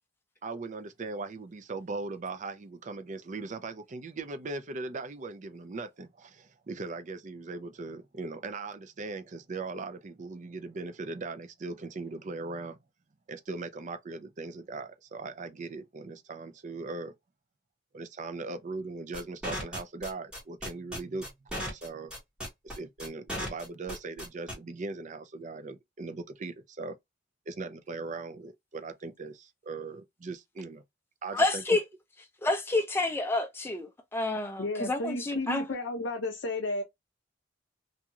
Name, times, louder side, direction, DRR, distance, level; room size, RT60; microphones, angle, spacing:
voice 1, 0.4-12.8 13.3-17.1 17.9-21.3 21.7-22.1 22.6-27.0 27.5-30.8 31.2-31.6, right 3 dB, 40° right, 0.5 m, -39 dB
sound 1, 19.1-24.5, equal, 5° right, 1.4 m, -36 dB
voice 2, 31.3-31.8 32.4-35.6, left 2 dB, 15° left, 0.5 m, -29 dB
voice 3, 34.6-36.8, left 2 dB, 75° left, 0.6 m, -33 dB
2.6 x 2.3 x 2.9 m
head